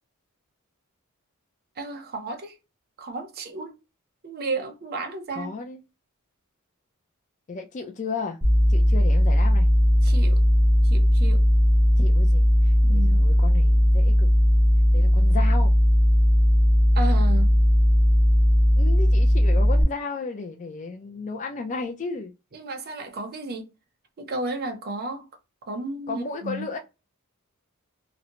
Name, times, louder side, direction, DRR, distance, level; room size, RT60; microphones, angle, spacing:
voice 1, 1.8-2.6 3.0-3.8 4.2-5.5 10.0-10.4 10.8-11.5 12.8-13.3 16.9-17.6 22.5-23.7 24.2-25.3 25.7-26.7, right 2 dB, 45° right, 0.6 m, -33 dB
voice 2, 5.3-5.8 7.5-8.4 8.7-9.7 12.0-14.3 14.9-15.7 18.8-22.3 26.1-26.8, left 4 dB, 35° left, 0.4 m, -34 dB
sound 1, 8.4-19.8, equal, 5° right, 0.7 m, -18 dB
2.6 x 2.1 x 2.8 m
head